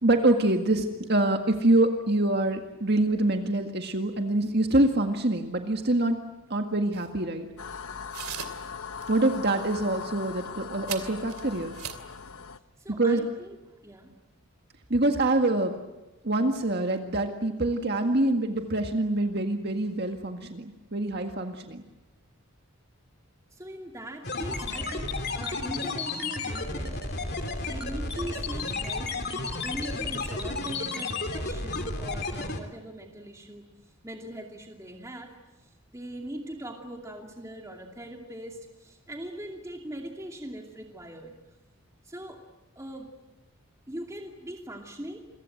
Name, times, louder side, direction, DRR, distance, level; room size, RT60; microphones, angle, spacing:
voice 1, 0.0-6.2 6.5-7.5 9.1-11.8 13.0-13.2 14.9-15.7 16.2-21.8, right 2 dB, 50° right, 4 dB, 1.9 m, -25 dB
sound 1, 6.9-7.1 8.1-8.7 9.0-9.1 9.5-9.8 10.9-12.1, right 10 dB, 85° right, 2.7 m, -39 dB
sound 2, 7.6-12.6, left 6 dB, 75° left, 1.1 m, -40 dB
voice 2, 12.8-14.1 23.5-27.0 27.2-29.1 29.6-33.6 34.0-35.3 35.7-41.3 42.0-42.4 42.8-43.1 43.9-45.2, right 1 dB, 15° right, 1 dB, 2.5 m, -41 dB
sound 3, 24.2-32.6, left 3 dB, 45° left, 3.1 m, -32 dB
28.5 x 23.5 x 7.9 m, 1.0 s
head